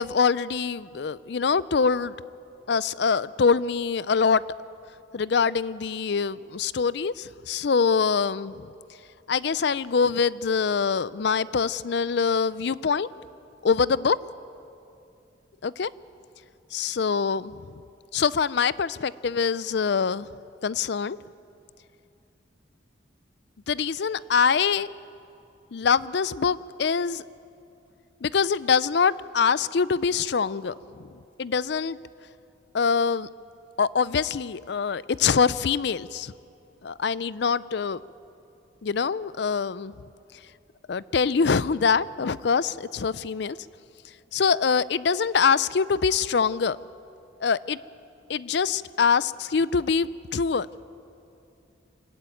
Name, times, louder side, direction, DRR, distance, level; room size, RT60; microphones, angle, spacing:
voice 1, 0.0-2.1 2.7-4.4 5.1-8.7 9.3-13.1 13.6-14.2 15.6-15.9 16.7-17.6 18.1-20.3 20.6-21.2 23.7-24.9 25.7-27.2 28.2-31.1 31.4-32.0 32.7-33.3 33.8-36.3 36.8-38.0 38.8-39.9 40.9-43.6 44.3-46.8 47.4-47.8 48.3-50.7, left 5 dB, 60° left, 18 dB, 0.4 m, -24 dB
25.5 x 15.0 x 9.2 m, 2.6 s
head